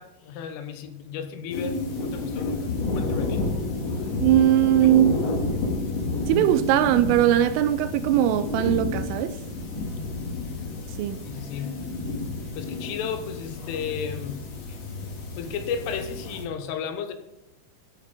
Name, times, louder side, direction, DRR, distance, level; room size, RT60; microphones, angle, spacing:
voice 1, 0.0-3.5 4.7-5.0 11.3-11.8 12.6-14.8 15.4-17.1, left 7 dB, 80° left, 3.4 m, -34 dB
sound 1, 1.5-16.4, left 3 dB, 55° left, 1.8 m, -30 dB
voice 2, 4.2-5.1 6.3-9.4 11.0-11.2, right 12 dB, 85° right, 3.0 m, -20 dB
12.5 x 5.9 x 4.9 m
omnidirectional pair, 6.0 m